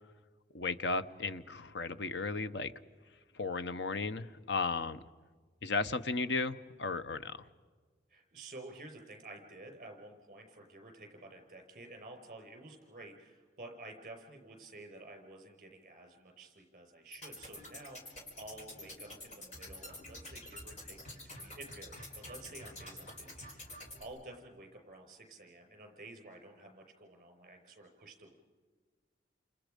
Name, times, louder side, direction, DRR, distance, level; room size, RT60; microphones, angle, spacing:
voice 1, 0.5-2.7 3.4-5.0 5.6-7.4, left 3 dB, 80° left, 12 dB, 0.9 m, -35 dB
voice 2, 8.1-23.7 24.0-28.4, right 2 dB, 45° right, 4 dB, 5.3 m, -51 dB
mpeg-noise, 17.1-24.0, left 1 dB, 40° left, 4.9 m, -48 dB
29.5 x 27.5 x 5.2 m, 1.4 s
head